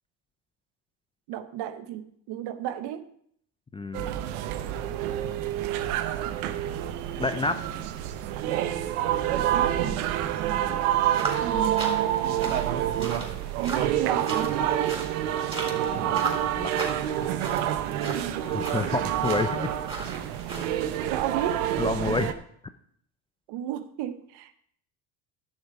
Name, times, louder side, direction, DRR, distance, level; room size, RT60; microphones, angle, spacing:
voice 1, 1.3-3.1 9.3-10.1 11.4-12.6 13.6-14.6 16.3-16.4 21.1-21.7 23.5-24.5, right 11 dB, 65° right, 11 dB, 1.1 m, -33 dB
voice 2, 3.7-4.1 7.2-7.7 10.5-10.8 15.8-16.9 18.4-19.7 21.8-22.3, left 3 dB, 15° left, 10 dB, 0.4 m, -30 dB
sound 1, 3.9-22.3, right 11 dB, 90° right, 1.0 m, -28 dB
sound 2, 11.1-21.1, right 3 dB, 15° right, 3.8 m, -38 dB
13.5 x 6.7 x 4.8 m, 0.65 s
supercardioid pair, 105°, 43 cm